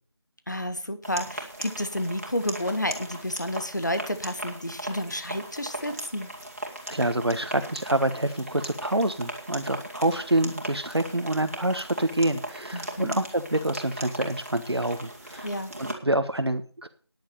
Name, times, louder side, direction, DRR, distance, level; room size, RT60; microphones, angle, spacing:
voice 1, 0.5-6.3 12.7-13.1 15.4-15.7, left 1 dB, 45° left, 11 dB, 1.4 m, -30 dB
sound 1, 1.0-15.9, right 1 dB, 35° right, 2.4 m, -38 dB
voice 2, 6.9-15.5 15.8-16.9, right 1 dB, 70° right, 8 dB, 1.3 m, -27 dB
10.0 x 8.7 x 6.7 m, 0.40 s
figure-of-eight pair, 175°, 14 cm